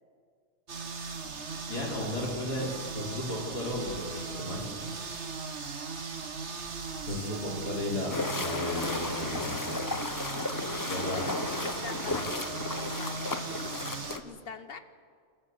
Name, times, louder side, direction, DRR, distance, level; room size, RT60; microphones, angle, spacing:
sound 1, 0.7-14.2, right 4 dB, 45° right, 1.7 m, -38 dB
voice 1, 1.7-2.7 2.9-4.6 7.1-9.5 10.9-11.2 12.1-12.2, left 1 dB, 80° left, -2 dB, 4.5 m, -34 dB
sound 2, 8.1-14.2, left 3 dB, 25° left, 0.4 m, -34 dB
voice 2, 11.1-13.3 14.2-14.8, left 5 dB, 40° left, 10 dB, 1.1 m, -44 dB
28.5 x 14.0 x 8.0 m, 2.2 s
omnidirectional pair, 1.7 m